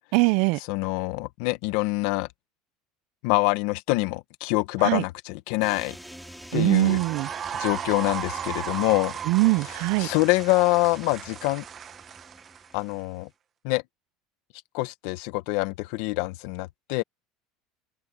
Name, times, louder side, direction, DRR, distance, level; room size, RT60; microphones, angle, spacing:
voice 1, 0.1-0.6 4.8-5.0 6.5-7.3 9.2-10.1, right 25 dB, 70° right, 0.6 m, -22 dB
voice 2, 0.7-2.3 3.2-6.0 6.5-7.0 7.6-9.1 10.0-11.6 12.7-13.3 13.6-13.8 14.7-17.0, left 22 dB, 75° left, 1.5 m, -25 dB
sound 1, 5.6-13.2, equal, ahead, 3.4 m, -46 dB
sound 2, 6.6-12.9, right 9 dB, 40° right, 1.3 m, -36 dB
open air
supercardioid pair, 115°, 0 cm